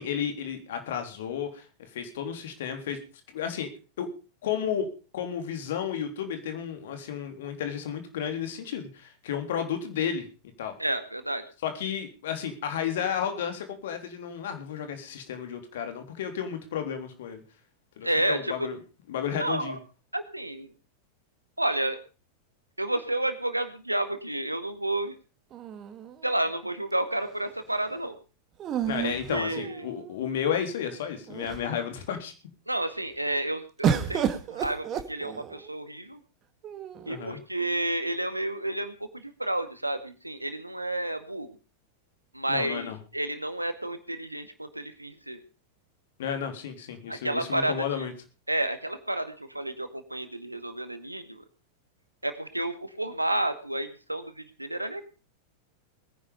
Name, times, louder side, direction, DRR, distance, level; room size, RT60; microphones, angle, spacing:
voice 1, 0.0-3.0 3.3-3.7 4.0-4.1 4.4-4.9 5.1-10.3 10.6-10.7 11.6-17.4 18.0-18.8 19.1-19.8 28.9-32.3 37.1-37.4 42.5-43.0 46.2-48.1, left 8 dB, 55° left, 7 dB, 3.6 m, -32 dB
voice 2, 10.8-11.4 18.0-18.7 19.4-19.8 20.1-20.7 21.6-22.0 22.8-25.2 26.2-28.1 29.0-29.8 32.7-36.2 37.1-41.5 42.3-42.9 43.1-45.4 47.1-48.1 48.5-51.4 52.2-55.0, right 1 dB, 85° right, 10 dB, 1.9 m, -31 dB
sound 1, 25.5-26.6 28.6-30.1 30.9-31.0 31.3-31.9 33.8-35.7 36.6-37.3, right 8 dB, 30° right, 1.9 m, -31 dB
21.0 x 10.5 x 5.2 m, 0.34 s
figure-of-eight pair, 90°, 0 cm